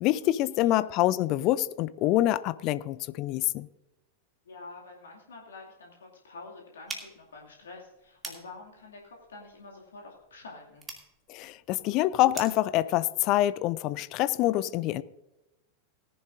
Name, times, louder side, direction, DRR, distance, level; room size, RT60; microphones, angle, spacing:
voice 1, 0.0-3.7 11.3-15.0, left 15 dB, 40° left, 0.5 m, -26 dB
voice 2, 4.4-10.9, left 3 dB, 65° left, 2.4 m, -47 dB
sound 1, 6.8-12.7, right 3 dB, 15° right, 2.5 m, -45 dB
18.5 x 11.0 x 2.6 m
figure-of-eight pair, 90°, 0 cm